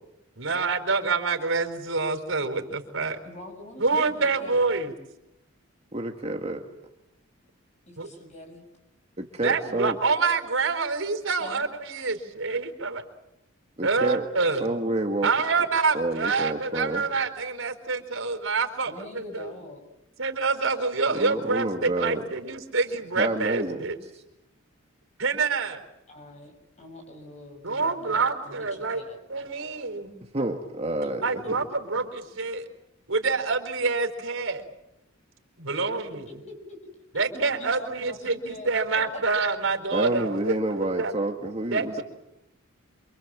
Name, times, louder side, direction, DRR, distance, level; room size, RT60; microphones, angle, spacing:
voice 1, 0.4-3.2 3.8-4.9 8.0-8.1 9.4-13.0 13.8-14.7 15.2-19.5 20.2-24.0 25.2-25.8 27.6-29.0 29.3-30.2 31.2-32.7 33.1-34.6 35.6-36.3 37.1-41.1 41.7-42.0, right 4 dB, 75° right, 5 dB, 4.2 m, -27 dB
voice 2, 3.2-4.6 7.9-8.6 11.4-11.7 18.9-19.9 26.1-29.2 31.0-31.1 31.4-31.5 35.7-35.9 36.3-36.8 37.3-38.7 39.1-39.2, left 2 dB, 35° left, 4 dB, 7.7 m, -44 dB
voice 3, 5.9-6.6 9.2-10.0 13.8-14.3 14.6-15.3 15.9-17.0 21.1-22.2 23.2-23.8 24.1-24.2 30.3-31.2 39.9-42.0, right 2 dB, 30° right, 2 dB, 2.0 m, -28 dB
27.5 x 26.0 x 7.6 m, 0.88 s
head